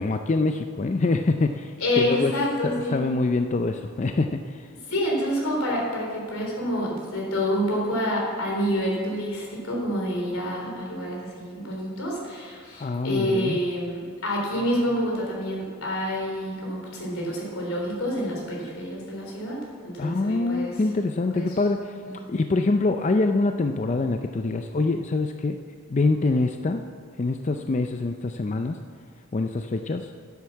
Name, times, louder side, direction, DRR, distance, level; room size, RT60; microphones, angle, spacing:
voice 1, 0.0-2.3 2.6-4.7 12.8-13.6 20.0-25.6 25.9-26.8 27.2-28.8 29.3-30.1, left 3 dB, 35° left, 6 dB, 0.4 m, -25 dB
voice 2, 1.8-3.0 4.9-20.7 21.3-21.5 22.0-22.1, equal, 85° left, -2 dB, 3.8 m, -28 dB
10.5 x 8.1 x 7.2 m, 2.1 s
head